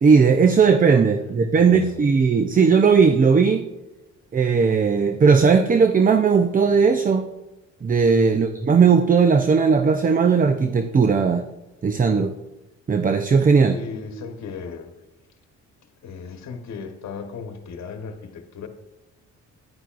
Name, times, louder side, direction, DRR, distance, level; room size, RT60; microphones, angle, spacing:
voice 1, 0.0-3.7 4.3-7.2 7.8-11.4 11.8-12.3 12.9-13.8, right 5 dB, 30° right, 0.6 m, -17 dB
voice 2, 1.6-2.1 8.3-8.6 13.7-14.9 15.8-18.7, left 5 dB, 65° left, 1.3 m, -36 dB
10.0 x 9.7 x 2.5 m
cardioid pair, 90°, 30 cm